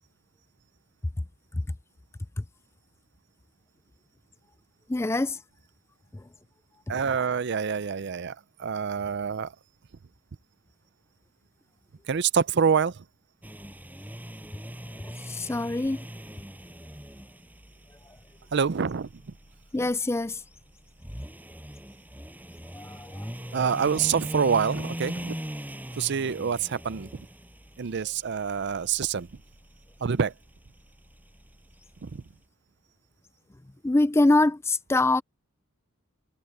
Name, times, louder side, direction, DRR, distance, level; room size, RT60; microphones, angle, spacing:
voice 1, 4.9-5.4 6.1-6.2 15.0-16.1 19.7-20.4 22.7-23.6 33.8-35.2, left 2 dB, 10° left, 0.4 m, -25 dB
voice 2, 6.9-9.5 12.1-13.0 18.5-19.2 23.5-25.4 26.0-27.1 27.8-29.3 30.0-30.3 32.0-32.2, right 6 dB, 55° right, 0.5 m, -26 dB
sound 1, 13.4-32.3, equal, 10° right, 6.0 m, -41 dB
head